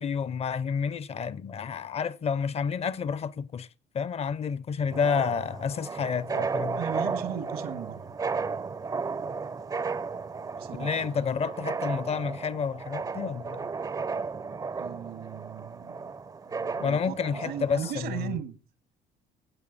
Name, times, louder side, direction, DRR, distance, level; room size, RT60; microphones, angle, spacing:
voice 1, 0.0-3.7 3.9-6.8 10.8-13.6 16.8-18.4, left 6 dB, 35° left, 0.5 m, -30 dB
sound 1, 4.9-17.9, right 4 dB, 20° right, 0.5 m, -34 dB
voice 2, 6.8-8.1 10.6-11.2 14.8-16.1 16.5-18.6, right 9 dB, 90° right, 1.8 m, -37 dB
16.0 x 8.5 x 4.1 m
cardioid pair, 110°, 17 cm